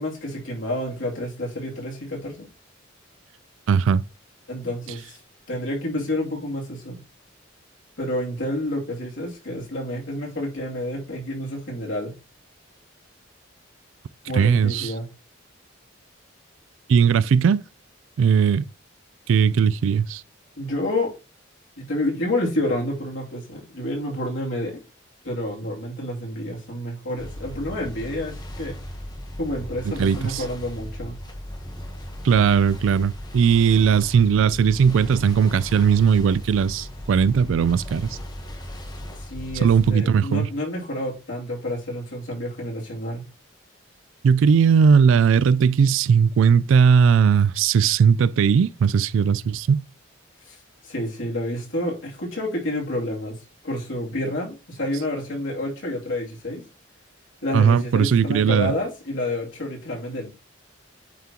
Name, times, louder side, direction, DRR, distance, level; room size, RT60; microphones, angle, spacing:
voice 1, 0.0-2.5 4.5-5.2 5.5-7.0 8.0-12.2 14.2-15.1 20.6-21.1 21.8-24.8 25.2-28.8 29.4-31.2 39.2-43.3 50.4-53.4 53.6-56.6 57.4-60.3, left 1 dB, 75° left, 2.6 m, -29 dB
voice 2, 3.7-4.0 14.3-14.9 16.9-17.6 18.2-18.7 19.3-20.2 30.0-30.4 32.2-38.2 39.6-40.5 44.2-49.8 57.5-58.7, right 6 dB, 75° right, 0.3 m, -18 dB
sound 1, 27.2-39.9, equal, 20° left, 1.0 m, -37 dB
9.1 x 3.7 x 2.9 m
head